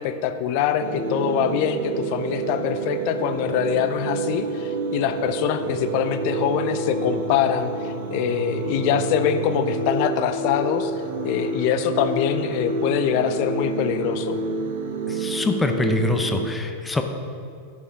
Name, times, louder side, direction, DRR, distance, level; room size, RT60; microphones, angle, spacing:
voice 1, 0.0-10.9 11.2-14.4, left 9 dB, 45° left, 10 dB, 0.6 m, -24 dB
sound 1, 0.8-16.5, right 3 dB, 55° right, 1.0 m, -28 dB
voice 2, 15.1-17.0, left 3 dB, 10° left, 6 dB, 0.7 m, -24 dB
10.5 x 8.4 x 3.6 m, 2.5 s
figure-of-eight pair, 90°, 0 cm